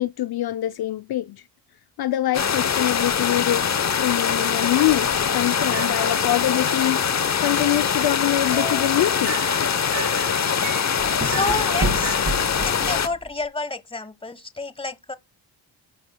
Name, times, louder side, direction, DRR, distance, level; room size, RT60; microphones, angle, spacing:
voice 1, 0.0-1.4 2.0-9.4, left 14 dB, 55° left, 0.5 m, -24 dB
sound 1, 2.3-13.1, left 7 dB, 40° left, 0.9 m, -23 dB
sound 2, 5.6-7.1 8.5-12.2, right 5 dB, 80° right, 5.8 m, -36 dB
sound 3, 7.8-13.5, right 2 dB, 30° right, 4.0 m, -33 dB
voice 2, 11.2-12.2 12.6-15.2, left 3 dB, 10° left, 1.2 m, -29 dB
11.5 x 8.1 x 2.2 m
supercardioid pair, 60°, 44 cm